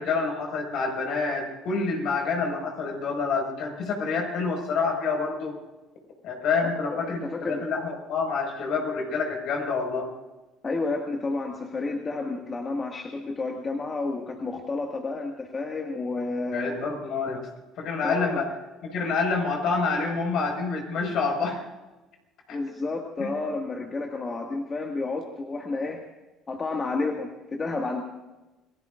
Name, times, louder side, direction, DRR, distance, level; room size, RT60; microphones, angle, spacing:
voice 1, 0.0-5.5 6.2-10.1 16.5-17.5 17.8-18.5 18.8-21.6 22.5-22.6 23.2-23.3, left 4 dB, 65° left, 2 dB, 5.1 m, -27 dB
voice 2, 7.0-7.6 10.6-16.8 18.0-18.4 22.5-26.0 26.5-28.0, left 3 dB, 30° left, 1 dB, 1.8 m, -31 dB
28.0 x 19.0 x 2.5 m, 1.1 s
supercardioid pair, 80°, 0 cm